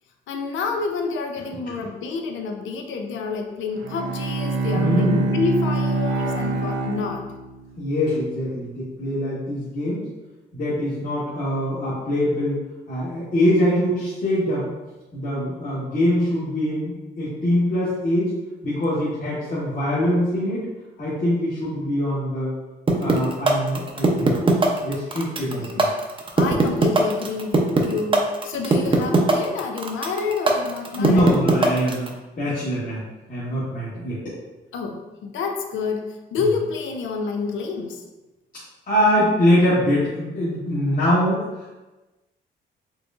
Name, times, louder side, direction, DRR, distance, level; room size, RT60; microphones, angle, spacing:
voice 1, 0.3-7.3 25.8-25.9 26.3-31.3 34.7-38.1, left 4 dB, 75° left, 3 dB, 0.6 m, -28 dB
Bowed string instrument, 3.7-7.8, right 2 dB, 75° right, 0.6 m, -24 dB
voice 2, 4.7-5.3 7.8-10.1 10.5-12.6 12.9-14.7 15.1-18.3 18.6-20.6 21.0-22.5 23.0-24.3 24.8-25.9 31.0-34.3 38.9-41.7, equal, 45° left, -11 dB, 1.3 m, -23 dB
sound 1, 22.9-32.1, right 3 dB, 25° right, 0.6 m, -19 dB
4.7 x 3.0 x 2.4 m, 1.1 s
cardioid pair, 90°, 20 cm